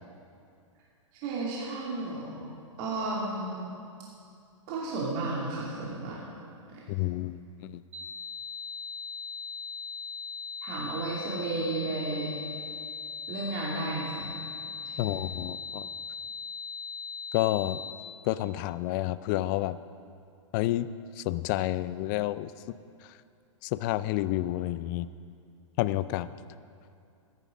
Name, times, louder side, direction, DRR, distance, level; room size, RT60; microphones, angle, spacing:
voice 1, 1.2-2.5 2.8-3.7 4.7-6.3 10.6-12.4 13.3-14.1 14.8-15.2, right 2 dB, 45° right, -5 dB, 2.6 m, -33 dB
voice 2, 6.9-7.8 15.0-15.9 17.3-17.8 18.3-19.8 20.5-22.5 23.6-25.1 25.8-26.3, left 15 dB, 40° left, 16 dB, 0.4 m, -29 dB
sound 1, 7.9-17.9, left 5 dB, 70° right, 1.4 m, -39 dB
14.0 x 10.5 x 5.1 m, 2.4 s
hypercardioid pair, 110°, 17 cm